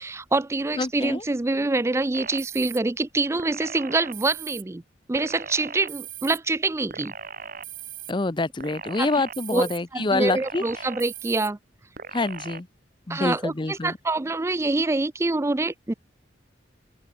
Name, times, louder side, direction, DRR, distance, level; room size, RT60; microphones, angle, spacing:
voice 1, 0.0-4.8 5.1-7.1 9.0-9.1 9.5-11.6 13.1-15.9, right 2 dB, 15° right, 0.4 m, -25 dB
voice 2, 0.8-1.2 8.1-10.6 12.1-12.7 13.1-13.9, left 2 dB, 25° left, 0.6 m, -26 dB
sound 1, 2.1-2.8 3.4-4.6 5.1-6.4 6.9-8.1 8.6-9.8 10.3-11.5 12.0-12.6, right 7 dB, 50° right, 2.0 m, -39 dB
open air
head